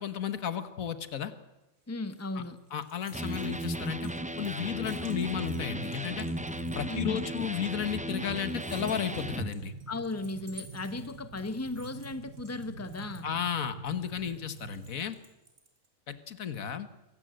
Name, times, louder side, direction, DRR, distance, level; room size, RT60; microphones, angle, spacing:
voice 1, 0.0-1.3 2.4-2.5 2.7-4.1 4.4-6.3 6.8-9.7 13.2-15.2 16.1-16.9, left 8 dB, 90° left, 11 dB, 1.7 m, -33 dB
sound 1, 1.6-15.9, right 3 dB, 65° right, 3.7 m, -56 dB
voice 2, 1.9-2.6 6.9-7.2 9.9-13.3, left 2 dB, 10° left, 11 dB, 1.0 m, -36 dB
Electric guitar, 3.1-9.5, right 1 dB, 10° right, 0.6 m, -35 dB
sound 2, 4.5-14.9, right 5 dB, 45° right, 1.4 m, -47 dB
23.5 x 17.0 x 7.8 m, 0.97 s
omnidirectional pair, 1.4 m